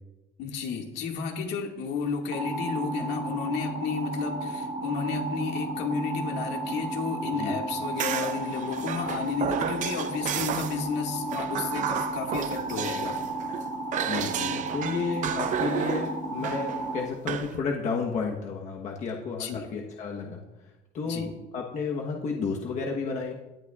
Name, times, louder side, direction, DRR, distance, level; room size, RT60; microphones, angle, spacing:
voice 1, 0.4-13.2 19.4-19.7 21.0-21.3, left 5 dB, 70° left, 2 dB, 1.9 m, -32 dB
sound 1, 2.3-17.0, right 2 dB, 65° right, 3.1 m, -34 dB
sound 2, 8.0-10.8 11.3-13.6 13.9-17.6, right 9 dB, 45° right, 0.6 m, -32 dB
voice 2, 14.1-20.4 20.9-23.4, left 4 dB, 40° left, -1 dB, 1.1 m, -32 dB
18.0 x 11.0 x 2.4 m, 1.0 s
cardioid pair, 170°, 18 cm